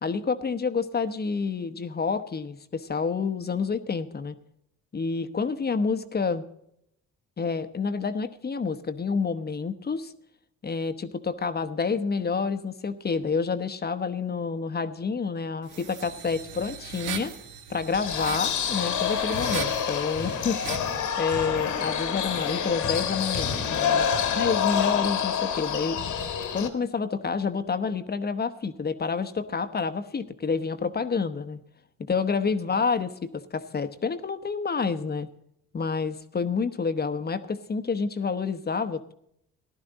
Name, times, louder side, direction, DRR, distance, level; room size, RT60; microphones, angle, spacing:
voice 1, 0.0-4.4 4.9-6.4 7.4-10.1 10.6-17.3 17.7-20.9 21.2-26.0 26.5-31.6 32.1-35.3 35.7-39.1, left 5 dB, 30° left, 10 dB, 1.0 m, -28 dB
sound 1, 15.7-21.0, right 7 dB, 85° right, 1.4 m, -39 dB
sound 2, 17.9-26.7, left 8 dB, 80° left, 1.7 m, -27 dB
15.0 x 11.5 x 4.0 m, 0.73 s
cardioid pair, 90°, 30 cm